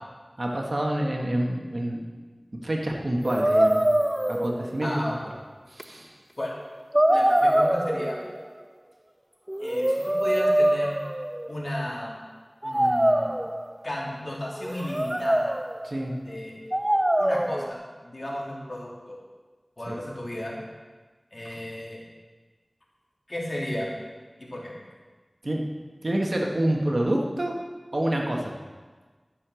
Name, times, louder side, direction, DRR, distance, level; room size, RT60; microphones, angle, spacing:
voice 1, 0.4-2.1 2.6-3.9 4.3-4.9 5.7-6.2 15.8-16.2 19.9-20.0 25.4-25.6 26.0-27.5 27.9-28.5, right 1 dB, 60° right, 0 dB, 1.7 m, -27 dB
sound 1, 3.2-5.0 5.8-5.9 6.9-8.5 9.5-11.7 12.6-13.9 14.6-15.9 16.7-17.7, right 1 dB, 20° right, 0.4 m, -24 dB
voice 2, 4.8-5.1 6.4-6.6 7.1-8.2 9.6-11.0 11.5-12.2 12.6-13.3 13.8-15.6 16.2-16.5 17.2-19.2 19.8-20.6 21.3-22.0 23.3-23.9 24.4-24.7, left 1 dB, 55° left, -4 dB, 3.1 m, -34 dB
12.5 x 6.8 x 6.4 m, 1.4 s
wide cardioid pair, 45°, 0 cm